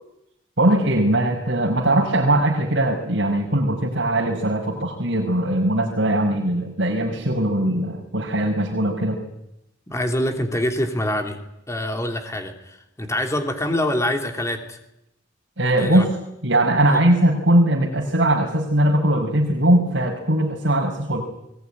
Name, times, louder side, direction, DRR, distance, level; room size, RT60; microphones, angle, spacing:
voice 1, 0.6-9.2 15.6-16.1 16.4-21.2, right 1 dB, 75° right, -3 dB, 5.3 m, -20 dB
voice 2, 9.9-11.4 11.7-14.8 15.7-16.0 16.9-17.0, left 1 dB, 15° left, 4 dB, 3.1 m, -25 dB
21.5 x 20.0 x 10.0 m, 0.84 s
head